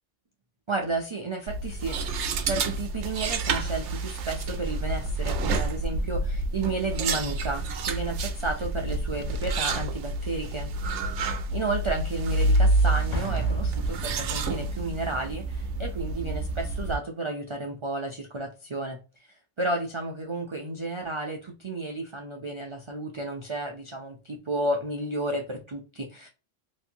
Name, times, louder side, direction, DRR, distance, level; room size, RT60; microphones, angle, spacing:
voice 1, 0.7-11.1 11.5-19.0 19.6-26.3, right 2 dB, 50° right, 1 dB, 0.3 m, -32 dB
sound 1, 1.5-17.0, right 2 dB, 70° right, 0.8 m, -28 dB
Explosion, 13.1-14.9, left 2 dB, 75° left, 1.0 m, -36 dB
3.0 x 2.5 x 2.7 m, 0.32 s
omnidirectional pair, 1.3 m